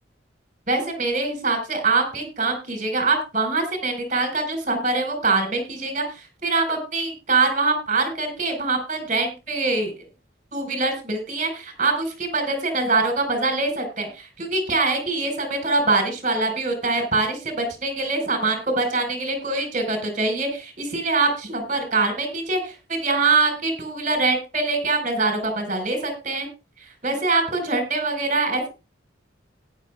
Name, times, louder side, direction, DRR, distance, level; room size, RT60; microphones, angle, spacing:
voice 1, 0.7-6.0 6.4-9.9 10.5-26.5 27.0-28.7, right 3 dB, 40° right, 5 dB, 5.1 m, -24 dB
17.5 x 10.5 x 2.4 m, 0.29 s
head